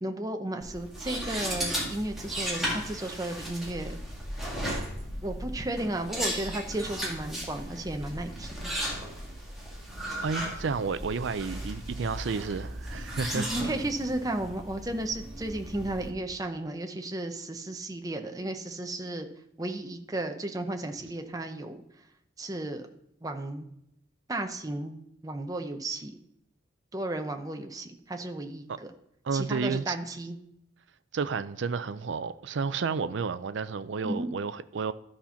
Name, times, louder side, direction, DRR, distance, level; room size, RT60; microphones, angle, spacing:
voice 1, 0.0-4.0 5.2-8.8 13.3-19.3 19.6-21.8 22.4-22.9 23.2-23.7 24.3-26.1 26.9-28.9 29.3-30.4 34.0-34.3, right 1 dB, 20° right, 0.7 m, -34 dB
sound 1, 0.6-16.1, equal, ahead, 1.9 m, -36 dB
voice 2, 10.2-13.5 28.7-28.8 29.2-30.0 31.1-34.9, right 5 dB, 65° right, 0.4 m, -31 dB
12.5 x 4.3 x 5.7 m
head